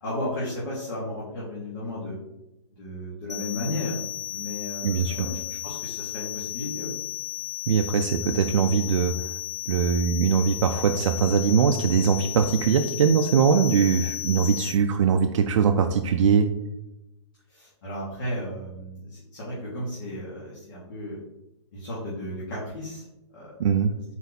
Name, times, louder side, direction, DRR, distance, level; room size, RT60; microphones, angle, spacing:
voice 1, 0.0-2.2 2.8-4.0 4.3-6.9 17.5-21.2 21.7-23.0 23.3-23.5, left 1 dB, 45° left, -7 dB, 1.3 m, -34 dB
sound 1, 3.3-14.7, left 14 dB, 75° left, 0.8 m, -34 dB
voice 2, 4.8-5.2 7.7-9.2 9.7-16.5 23.6-23.9, right 6 dB, 80° right, 5 dB, 0.4 m, -21 dB
4.3 x 2.7 x 3.9 m, 0.91 s
hypercardioid pair, 170°, 16 cm